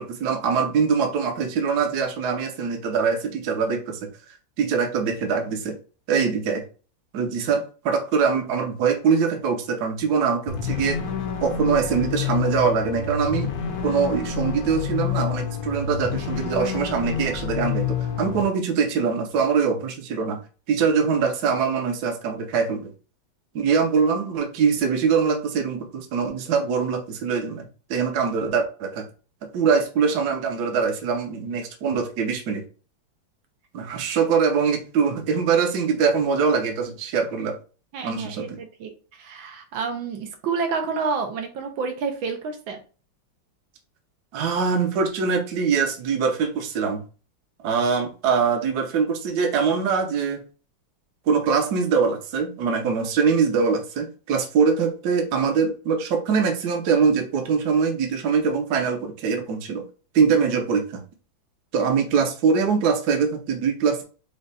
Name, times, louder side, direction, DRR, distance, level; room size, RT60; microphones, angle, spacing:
voice 1, 0.0-4.1 4.6-5.8 6.1-6.6 7.1-11.0 11.4-13.5 13.8-20.4 20.7-22.9 23.5-29.0 29.5-32.6 33.7-37.6 38.0-38.6 44.3-47.0 47.6-50.4 51.3-59.8 60.1-61.0 61.7-64.0, right 5 dB, 60° right, 4 dB, 1.3 m, -23 dB
sound 1, 10.5-18.4, left 7 dB, 60° left, 1.1 m, -28 dB
voice 2, 37.9-42.8, right 5 dB, 80° right, 4 dB, 1.6 m, -29 dB
5.2 x 2.3 x 4.0 m, 0.36 s
omnidirectional pair, 2.2 m